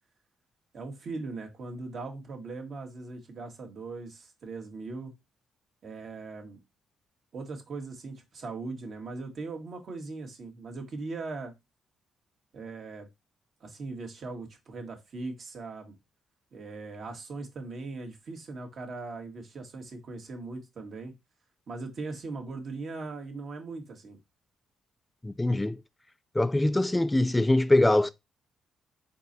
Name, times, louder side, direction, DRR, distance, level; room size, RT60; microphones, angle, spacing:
voice 1, 0.7-5.1 5.8-6.6 7.3-11.5 12.5-13.1 13.6-15.9 16.5-21.1 21.7-24.2, right 3 dB, 55° right, 1.6 m, -39 dB
voice 2, 25.2-25.8 26.4-28.1, left 1 dB, 10° left, 0.3 m, -23 dB
4.5 x 4.4 x 2.6 m
cardioid pair, 90°, 0 cm